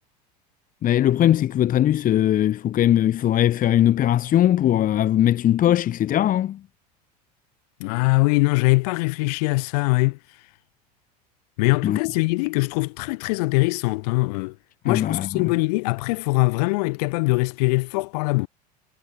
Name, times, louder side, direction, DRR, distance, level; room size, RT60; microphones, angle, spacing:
voice 1, 0.8-6.6 11.8-12.0 14.9-15.5, left 12 dB, 40° left, 2.1 m, -20 dB
voice 2, 7.8-10.2 11.6-14.6 14.8-18.5, left 26 dB, 70° left, 5.3 m, -22 dB
hypercardioid pair, 85°, 21 cm